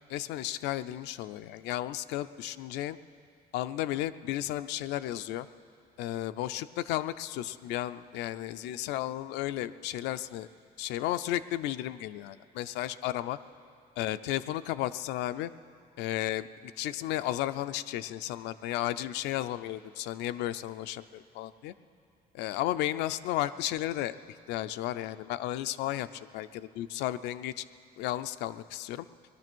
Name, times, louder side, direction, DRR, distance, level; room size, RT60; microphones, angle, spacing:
voice 1, 0.1-3.0 3.5-5.5 6.0-10.5 10.8-13.4 14.0-15.5 16.0-21.7 22.3-24.2 24.5-27.6 28.0-29.1, left 14 dB, 90° left, 11 dB, 0.5 m, -33 dB
19.0 x 12.0 x 6.2 m, 2.4 s
cardioid pair, 110°, 17 cm